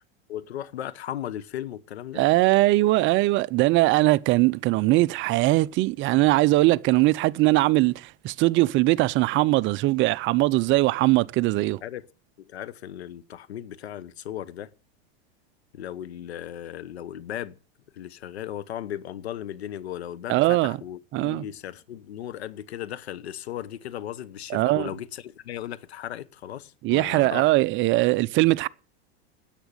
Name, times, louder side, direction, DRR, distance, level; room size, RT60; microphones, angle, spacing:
voice 1, 0.3-2.2 11.8-12.1 12.4-14.7 15.7-17.6 17.9-27.5, left 11 dB, 90° left, 1.0 m, -36 dB
voice 2, 2.1-11.8 20.3-20.8 21.1-21.4 24.5-24.9 26.8-28.7, right 19 dB, 40° right, 0.6 m, -21 dB
10.5 x 8.2 x 9.7 m
supercardioid pair, 120°, 31 cm